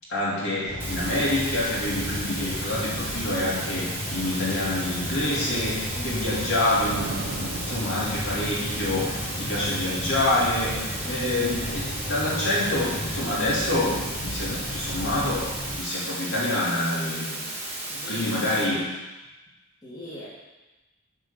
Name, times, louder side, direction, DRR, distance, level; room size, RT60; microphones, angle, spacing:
voice 1, 0.1-17.4 18.1-18.9, left 1 dB, 60° left, -6 dB, 2.8 m, -27 dB
sound 1, 0.7-15.8, left 1 dB, 40° left, 1.1 m, -35 dB
sound 2, 0.8-18.6, right 1 dB, 10° right, 1.6 m, -34 dB
voice 2, 5.9-6.3 11.0-11.3 17.9-18.8 19.8-20.3, left 1 dB, 20° left, -8 dB, 2.0 m, -39 dB
sound 3, 6.9-9.1, right 3 dB, 50° right, 0.6 m, -37 dB
10.0 x 3.9 x 7.0 m, 1.1 s
head